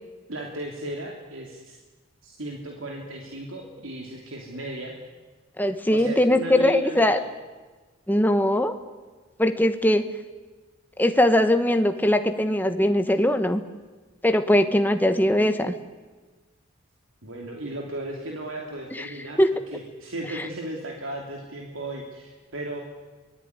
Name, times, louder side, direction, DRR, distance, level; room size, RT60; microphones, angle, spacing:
voice 1, 0.3-1.8 2.2-4.9 5.9-7.2 17.2-22.8, right 1 dB, 90° right, 0 dB, 3.0 m, -35 dB
voice 2, 5.6-7.2 8.1-8.7 9.4-10.0 11.0-13.6 14.2-15.7 19.4-19.5, left 1 dB, 10° left, 7 dB, 1.2 m, -20 dB
24.0 x 18.5 x 9.7 m, 1.3 s
head